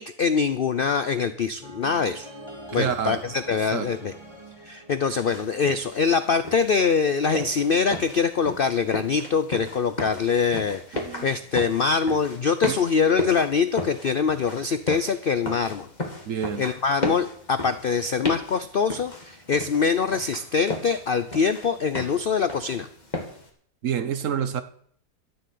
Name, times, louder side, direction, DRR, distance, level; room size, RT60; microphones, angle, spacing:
voice 1, 0.0-2.3 2.7-4.1 4.6-15.9 16.6-22.9, left 5 dB, 65° left, 0.5 m, -24 dB
sound 1, 1.6-5.7, right 1 dB, 15° right, 2.0 m, -44 dB
voice 2, 2.7-3.2 3.7-3.9 10.9-11.3 12.6-12.8 16.3-16.7 23.8-24.6, right 8 dB, 55° right, 1.1 m, -28 dB
sound 2, 5.1-23.5, left 2 dB, 25° left, 2.1 m, -35 dB
12.5 x 7.6 x 8.6 m
omnidirectional pair, 1.8 m